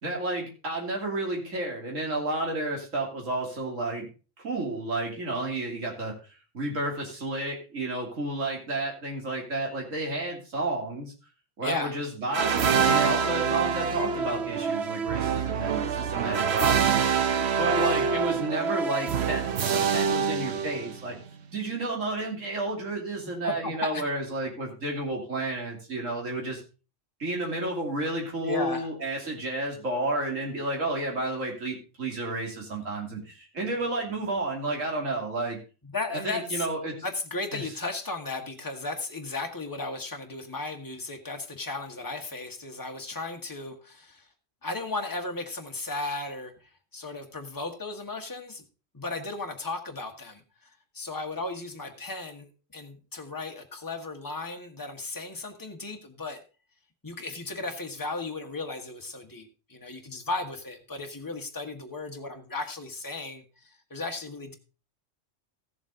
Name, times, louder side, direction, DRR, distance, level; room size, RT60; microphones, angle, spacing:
voice 1, 0.0-4.1 4.4-6.1 6.5-11.1 11.6-17.0 17.6-21.2 21.5-26.6 27.2-35.6 36.1-36.9 37.5-37.7, right 2 dB, 85° right, 0 dB, 3.2 m, -31 dB
voice 2, 11.6-11.9 23.4-24.0 28.4-28.9 35.9-36.7 37.0-44.3 44.6-46.5 46.9-48.6 48.9-50.4 50.9-56.4 57.0-63.4 63.9-64.6, left 3 dB, 15° left, 3 dB, 1.4 m, -35 dB
sound 1, 12.3-21.2, right 6 dB, 60° right, 1.1 m, -26 dB
15.0 x 7.3 x 3.8 m, 0.33 s
omnidirectional pair, 1.3 m